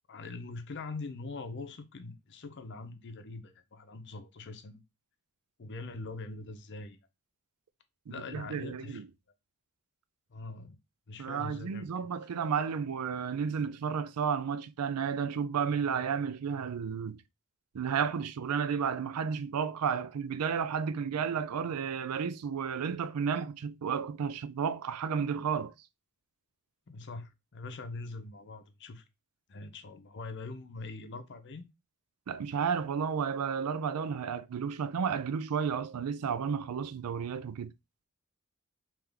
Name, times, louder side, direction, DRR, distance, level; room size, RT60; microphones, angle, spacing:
voice 1, 0.1-4.8 5.6-7.0 8.1-9.0 10.3-10.8 11.1-12.1 26.9-29.0 29.5-31.7, left 3 dB, 50° left, 0.6 m, -43 dB
voice 2, 8.1-9.1 11.2-17.2 17.7-25.7 32.3-37.7, right 6 dB, 90° right, 0.4 m, -32 dB
3.7 x 3.0 x 3.4 m
head